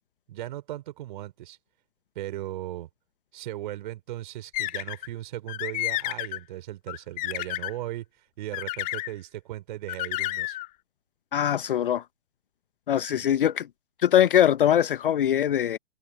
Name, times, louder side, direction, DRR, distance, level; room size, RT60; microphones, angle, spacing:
voice 1, 0.3-1.6 2.2-2.9 3.3-10.6 13.0-13.4, right 14 dB, 40° right, 3.7 m, -37 dB
sound 1, 4.5-5.1 5.5-6.4 6.9-7.7 8.5-9.1 9.9-10.7, left 18 dB, 20° left, 2.0 m, -31 dB
voice 2, 11.3-12.0 12.9-13.7 14.0-15.8, left 10 dB, 45° left, 1.0 m, -22 dB
figure-of-eight pair, 125°, 37 cm